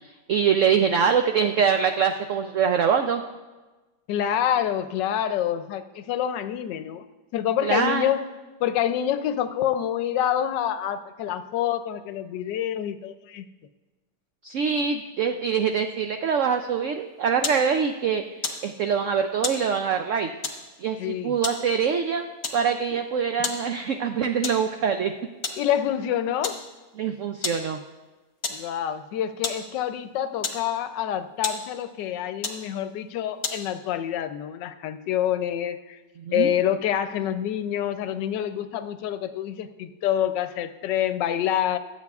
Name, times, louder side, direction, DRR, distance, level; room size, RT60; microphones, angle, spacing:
voice 1, 0.3-3.2 7.6-8.0 14.4-20.3 20.8-25.1 27.0-27.8 36.2-36.5, right 7 dB, 80° right, 6 dB, 0.6 m, -24 dB
voice 2, 4.1-7.0 7.3-8.2 8.6-13.4 21.0-21.3 22.9-23.0 25.6-26.6 28.5-36.0 36.3-41.8, left 10 dB, 85° left, 11 dB, 1.3 m, -27 dB
sound 1, 17.0-33.9, left 5 dB, 60° left, 1.5 m, -37 dB
24.0 x 8.2 x 2.4 m, 1.2 s
omnidirectional pair, 1.9 m